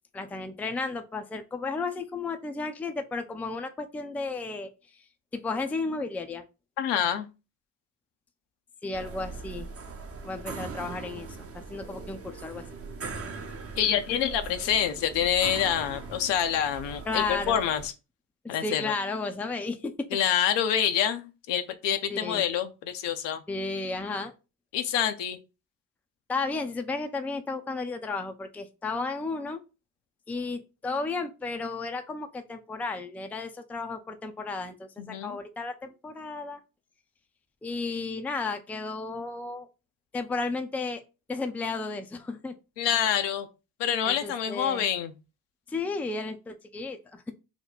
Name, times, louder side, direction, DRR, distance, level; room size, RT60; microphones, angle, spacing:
voice 1, 0.1-4.7 5.3-6.4 8.8-9.7 10.2-12.6 17.1-17.6 18.4-19.9 22.1-22.4 23.5-24.3 26.3-29.6 30.3-36.6 37.6-39.7 40.1-41.0 41.3-42.5 44.1-44.9 45.7-47.3, left 3 dB, 5° left, 0.4 m, -33 dB
voice 2, 6.8-7.3 13.8-17.9 18.5-18.9 20.1-23.4 24.7-25.4 35.0-35.4 42.8-43.5 43.8-45.1, left 9 dB, 65° left, 0.6 m, -27 dB
sound 1, 8.9-17.9, right 4 dB, 30° right, 0.7 m, -40 dB
3.0 x 2.1 x 3.9 m
hypercardioid pair, 40°, 46 cm